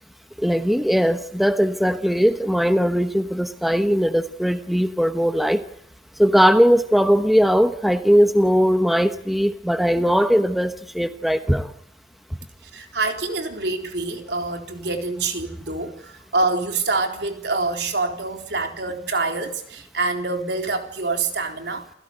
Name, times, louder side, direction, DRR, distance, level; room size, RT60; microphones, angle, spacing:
voice 1, 0.4-5.6 6.2-11.7, equal, ahead, 1.1 m, -19 dB
voice 2, 12.7-22.0, right 3 dB, 70° right, 4.0 m, -26 dB
29.0 x 17.0 x 8.0 m
head